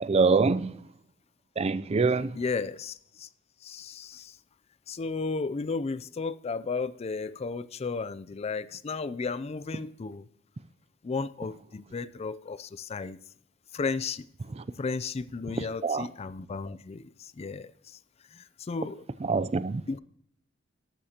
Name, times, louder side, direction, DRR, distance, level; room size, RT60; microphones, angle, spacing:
voice 1, 0.0-0.7 1.6-2.3 15.8-16.1 19.2-19.8, right 4 dB, 30° right, 0.4 m, -24 dB
voice 2, 2.3-3.3 3.6-4.3 4.9-10.2 11.0-13.2 13.7-14.3 14.8-18.0 18.3-19.0 19.9-20.0, left 4 dB, 30° left, 0.4 m, -34 dB
13.5 x 12.0 x 2.9 m
head